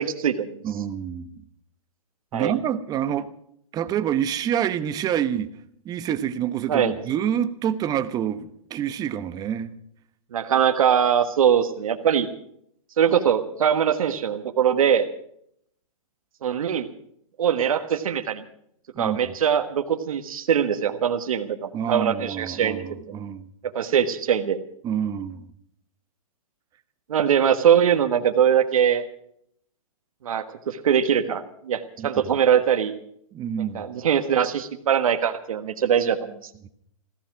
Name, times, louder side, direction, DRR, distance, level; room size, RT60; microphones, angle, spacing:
voice 1, 0.0-0.5 2.3-2.5 6.7-6.9 10.3-12.3 13.0-15.1 16.4-16.9 17.4-18.5 19.0-23.0 23.7-24.6 27.1-29.1 30.2-32.9 33.6-36.5, right 8 dB, 75° right, 7 dB, 1.5 m, -22 dB
voice 2, 0.6-1.4 2.3-3.3 3.7-5.5 5.8-9.7 18.9-19.3 21.7-23.5 24.8-25.5 32.0-32.1 33.3-33.9, right 9 dB, 20° right, 12 dB, 1.0 m, -27 dB
15.0 x 15.0 x 6.2 m, 0.70 s
hypercardioid pair, 135°, 18 cm